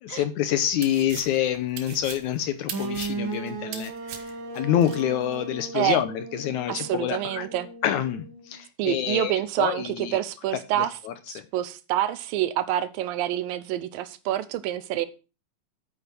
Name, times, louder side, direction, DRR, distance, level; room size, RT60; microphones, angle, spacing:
voice 1, 0.1-7.5 7.8-10.2 10.8-11.5, left 10 dB, 75° left, 1.9 m, -27 dB
sound 1, 0.6-5.0, right 9 dB, 70° right, 2.7 m, -40 dB
sound 2, 2.7-8.6, right 3 dB, 40° right, 2.3 m, -36 dB
voice 2, 6.7-7.7 8.8-11.0 11.3-15.1, right 13 dB, 90° right, 2.6 m, -27 dB
8.8 x 6.9 x 6.1 m
omnidirectional pair, 3.9 m